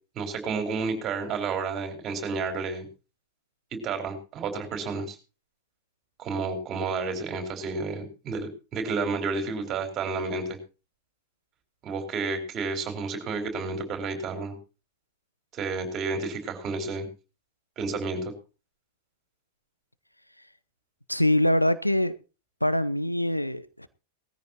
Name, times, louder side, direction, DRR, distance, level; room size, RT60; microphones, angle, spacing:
voice 1, 0.1-2.9 3.7-5.2 6.2-10.6 11.8-14.6 15.5-17.1 17.8-18.3, right 4 dB, 30° right, 4.4 m, -31 dB
voice 2, 21.1-22.1 22.6-23.9, left 1 dB, 90° left, 0.7 m, -24 dB
19.0 x 14.0 x 2.9 m
figure-of-eight pair, 90°, 0 cm